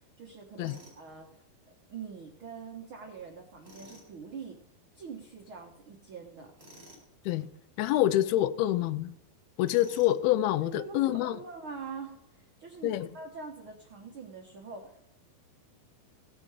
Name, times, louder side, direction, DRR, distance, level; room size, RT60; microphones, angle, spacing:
voice 1, 0.0-1.4 1.9-4.6 4.9-6.5 10.6-15.1, right 5 dB, 90° right, 1.1 m, -44 dB
Tools, 0.6-1.0 3.6-4.1 6.6-7.1 9.6-10.2, equal, 10° right, 3.7 m, -52 dB
voice 2, 7.8-9.1 9.6-11.4 12.8-13.1, left 14 dB, 90° left, 2.5 m, -26 dB
17.0 x 6.2 x 4.8 m
omnidirectional pair, 4.3 m